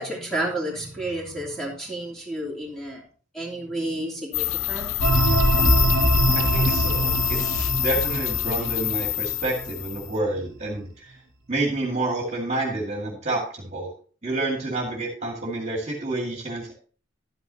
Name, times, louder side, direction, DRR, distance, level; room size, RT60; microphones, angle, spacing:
voice 1, 0.0-3.0 3.3-4.9, right 1 dB, ahead, -3 dB, 2.9 m, -31 dB
sound 1, 4.3-10.1, left 15 dB, 85° left, 0.3 m, -26 dB
sound 2, 5.0-9.8, right 1 dB, 75° right, 1.3 m, -23 dB
voice 2, 6.3-11.2 11.5-13.9 14.2-16.7, right 2 dB, 30° right, 0 dB, 2.1 m, -29 dB
12.0 x 9.6 x 2.8 m, 0.40 s
head